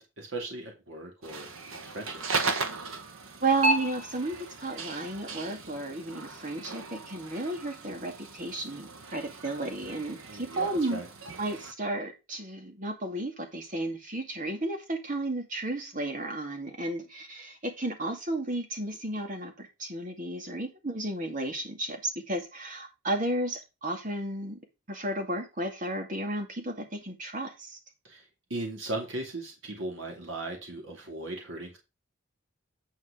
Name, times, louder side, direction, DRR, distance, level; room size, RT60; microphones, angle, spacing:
voice 1, 0.0-2.4 10.3-11.1 28.0-31.8, right 2 dB, 65° right, 1 dB, 2.5 m, -38 dB
sound 1, 1.2-11.7, right 3 dB, 85° right, 1.5 m, -35 dB
voice 2, 3.4-11.0 11.4-24.6 24.9-27.8, right 2 dB, 40° right, 4 dB, 2.3 m, -33 dB
9.4 x 4.8 x 5.0 m, 0.25 s
head